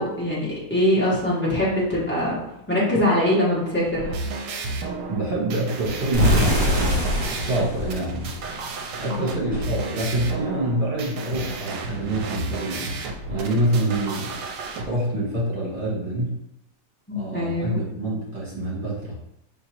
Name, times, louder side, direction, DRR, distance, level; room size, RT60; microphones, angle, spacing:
voice 1, 0.0-2.4 2.7-4.1 9.0-9.4 17.1-17.9, left 1 dB, 10° left, -7 dB, 1.1 m, -23 dB
sound 1, 3.9-14.8, right 3 dB, 80° right, 1.2 m, -32 dB
voice 2, 5.1-8.3 9.0-12.9 13.3-14.4 14.8-16.4 17.1-19.2, right 1 dB, 40° right, -6 dB, 1.9 m, -26 dB
sound 2, 6.1-9.0, equal, 65° right, 1.3 m, -23 dB
4.8 x 3.0 x 3.0 m, 0.82 s
omnidirectional pair, 1.8 m